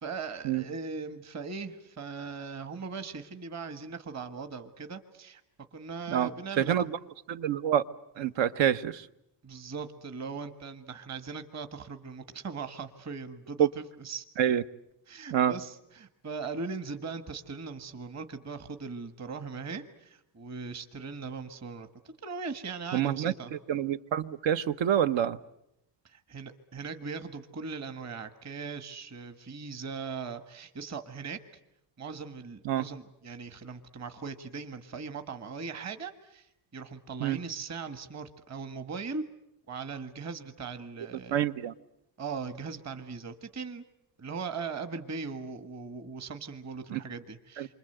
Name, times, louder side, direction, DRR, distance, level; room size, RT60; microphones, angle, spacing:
voice 1, 0.0-5.4 5.7-6.7 9.4-14.2 15.1-21.9 22.2-23.5 26.0-31.4 32.0-39.2 39.7-41.5 42.2-43.8 44.2-47.7, right 5 dB, 35° right, 9 dB, 1.5 m, -39 dB
voice 2, 6.6-7.0 7.3-7.8 8.2-9.1 13.6-13.7 14.4-14.6 15.3-15.5 22.9-25.4 32.6-32.9 37.2-37.4 41.3-41.7 46.9-47.0 47.6-47.7, right 10 dB, 85° right, 12 dB, 1.2 m, -27 dB
28.5 x 25.0 x 7.9 m, 0.82 s
cardioid pair, 160°, 44 cm